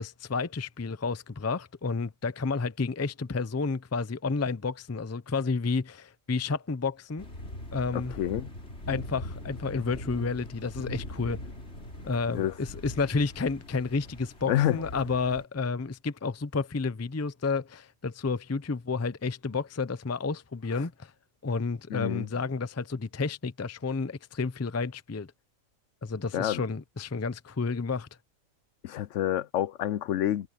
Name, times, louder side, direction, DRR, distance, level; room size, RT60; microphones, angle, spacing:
voice 1, 0.0-7.3 7.7-8.1 8.9-11.4 12.0-21.1 21.4-25.3 26.0-28.1, left 4 dB, 20° left, 0.4 m, -31 dB
sound 1, 7.2-15.4, left 1 dB, 55° left, 4.3 m, -42 dB
voice 2, 7.9-8.5 12.3-12.5 14.5-14.8 20.7-20.8 21.9-22.3 26.3-26.6 28.8-30.5, left 12 dB, 70° left, 0.9 m, -28 dB
omnidirectional pair, 1.4 m